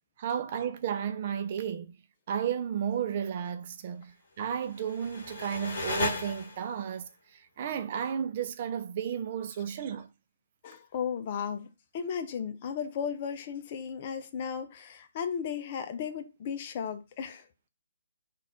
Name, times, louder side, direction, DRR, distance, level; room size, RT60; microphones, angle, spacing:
voice 1, 0.2-2.0 2.3-10.1, right 8 dB, 40° right, 0.5 m, -33 dB
sound 1, 4.5-6.9, left 3 dB, 60° left, 1.1 m, -35 dB
voice 2, 10.6-11.7 11.9-17.4, left 7 dB, 40° left, 0.6 m, -35 dB
4.0 x 2.5 x 4.3 m
hypercardioid pair, 145°, 0 cm